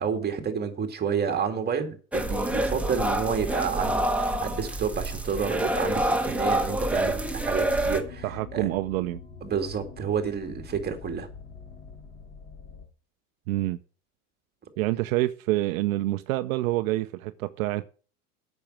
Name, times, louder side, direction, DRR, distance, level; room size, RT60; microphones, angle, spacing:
voice 1, 0.0-8.7 9.4-11.3, right 6 dB, 20° right, 2.2 m, -30 dB
sound 1, 2.1-8.0, right 1 dB, 5° right, 1.4 m, -27 dB
sound 2, 7.6-12.9, left 6 dB, 25° left, 2.1 m, -44 dB
voice 2, 8.2-9.2 13.5-13.8 14.8-17.9, right 17 dB, 65° right, 0.7 m, -27 dB
8.6 x 6.3 x 7.5 m
hypercardioid pair, 110°, 44 cm